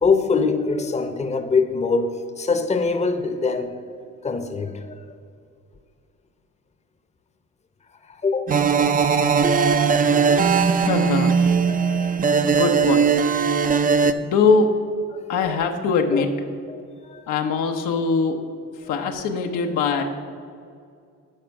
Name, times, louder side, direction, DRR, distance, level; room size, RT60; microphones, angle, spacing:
voice 1, 0.0-3.8 4.2-5.0 8.0-8.5 10.3-11.1 11.7-12.4 15.1-15.7 16.1-16.3 16.7-17.3 18.8-19.2 20.0-20.1, left 4 dB, 20° left, 9 dB, 0.7 m, -25 dB
sound 1, 8.5-14.1, right 6 dB, 30° right, 0.4 m, -19 dB
voice 2, 10.8-11.6 12.5-13.2 14.2-14.7 15.3-16.3 17.3-18.4 18.9-20.0, left 4 dB, 85° left, 5 dB, 0.9 m, -22 dB
8.9 x 5.3 x 5.8 m, 2.3 s
cardioid pair, 90°, 30 cm